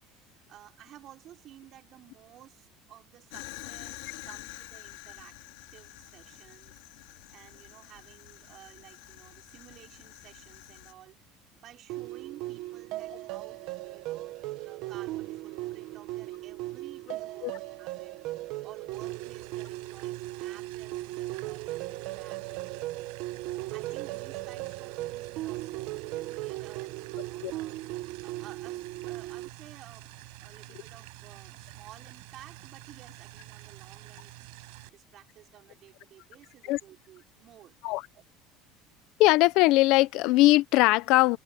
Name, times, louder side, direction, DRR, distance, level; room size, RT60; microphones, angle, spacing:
voice 1, 0.0-5.4 5.7-6.8 7.3-11.2 11.6-18.1 18.6-30.1 30.4-34.3 34.9-37.8 38.1-38.2, right 12 dB, 40° right, 5.3 m, -54 dB
Fire, 3.3-10.9, left 23 dB, 85° left, 3.2 m, -47 dB
sound 1, 11.9-29.5, right 18 dB, 60° right, 1.1 m, -37 dB
sound 2, 18.9-34.9, right 34 dB, 80° right, 7.6 m, -48 dB
voice 2, 39.2-41.4, left 19 dB, 60° left, 0.7 m, -21 dB
cardioid pair, 160°, 0 cm